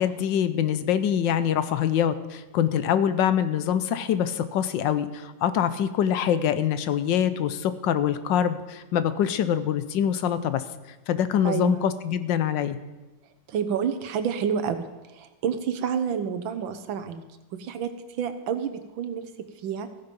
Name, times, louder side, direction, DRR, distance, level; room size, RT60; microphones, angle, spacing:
voice 1, 0.0-10.6 11.1-12.8, left 9 dB, 75° left, 12 dB, 1.4 m, -24 dB
voice 2, 11.4-11.8 13.5-17.2 17.5-19.2 19.6-19.9, right 7 dB, 85° right, 10 dB, 1.7 m, -29 dB
14.5 x 9.8 x 5.3 m, 1.1 s
omnidirectional pair, 2.1 m